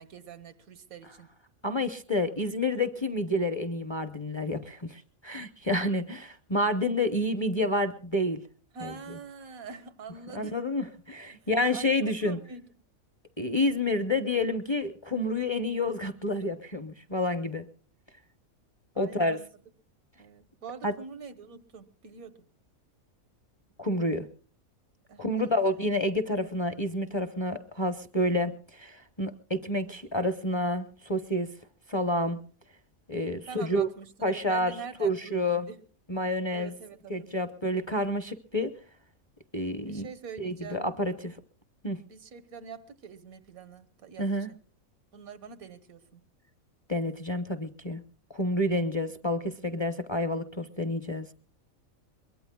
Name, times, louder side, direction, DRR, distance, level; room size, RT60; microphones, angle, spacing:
voice 1, 0.0-1.3 8.7-10.6 11.7-12.7 19.0-19.5 20.2-22.5 25.1-25.7 33.5-35.8 36.5-37.4 39.9-40.9 42.0-44.6 45.1-46.2, right 5 dB, 85° right, 12 dB, 1.6 m, -45 dB
voice 2, 1.6-8.4 8.8-9.2 10.3-12.4 13.4-17.6 19.0-19.4 20.8-20.9 23.8-24.3 25.2-31.5 31.9-32.4 33.1-33.9 34.2-34.7 35.0-35.7 36.1-36.7 37.1-38.7 39.5-40.1 40.4-41.4 41.8-42.0 44.2-44.5 46.9-48.0 48.3-51.3, left 1 dB, 25° left, 9 dB, 0.7 m, -29 dB
23.0 x 21.5 x 2.3 m, 0.43 s
omnidirectional pair, 1.5 m